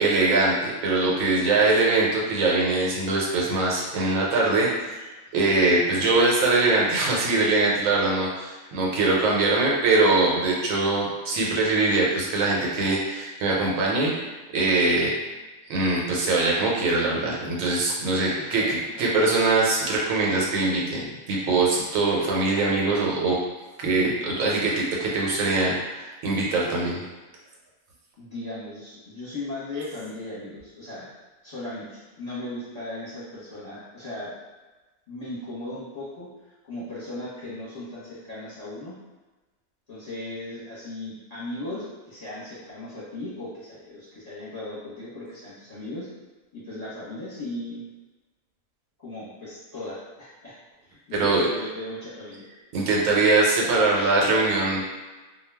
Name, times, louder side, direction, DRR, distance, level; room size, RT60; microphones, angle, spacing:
voice 1, 0.0-15.1 15.7-23.4 23.8-27.0 51.1-51.5 52.7-54.8, right 3 dB, 80° right, -3 dB, 1.0 m, -22 dB
voice 2, 18.4-19.0 28.2-31.1 31.4-34.3 35.1-36.3 36.7-38.9 39.9-46.1 46.5-47.8 49.0-50.6 51.1-52.4, left 1 dB, 35° left, -10 dB, 0.9 m, -37 dB
2.3 x 2.2 x 3.3 m, 1.2 s
omnidirectional pair, 1.4 m